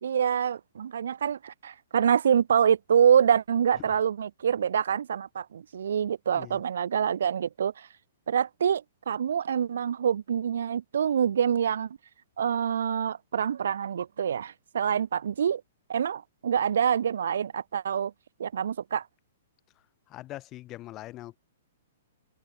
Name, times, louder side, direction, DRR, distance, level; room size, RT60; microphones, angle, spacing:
voice 1, 0.0-7.9 8.3-12.0 12.4-15.6 15.9-18.1 18.4-19.0, right 8 dB, 60° right, 3.8 m, -26 dB
voice 2, 20.1-21.4, left 16 dB, 25° left, 4.1 m, -42 dB
open air
figure-of-eight pair, 110°, 0 cm